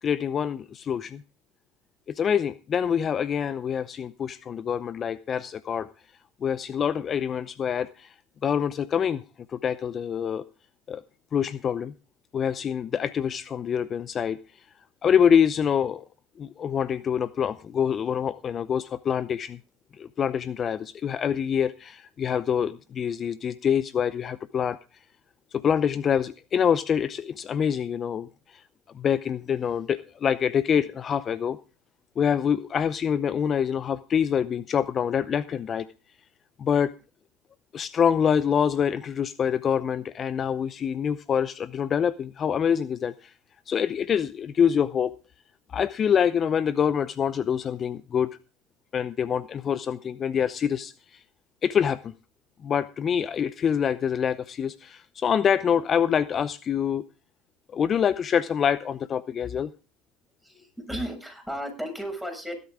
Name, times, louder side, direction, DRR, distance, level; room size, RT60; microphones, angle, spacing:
voice 1, 0.0-1.2 2.1-5.9 6.4-8.1 8.4-9.2 9.5-10.4 10.9-11.0 11.3-11.9 12.3-14.7 15.0-16.0 16.4-19.6 20.0-24.8 25.5-28.6 28.9-31.6 32.2-35.9 36.6-36.9 37.7-43.3 43.7-45.1 45.7-48.3 48.9-51.2 51.6-52.1 52.6-57.0 57.7-59.7, left 8 dB, 40° left, 16 dB, 0.7 m, -25 dB
voice 2, 60.4-62.5, equal, ahead, 4 dB, 6.6 m, -34 dB
16.5 x 12.0 x 3.7 m, 0.35 s
hypercardioid pair, 85°, 0 cm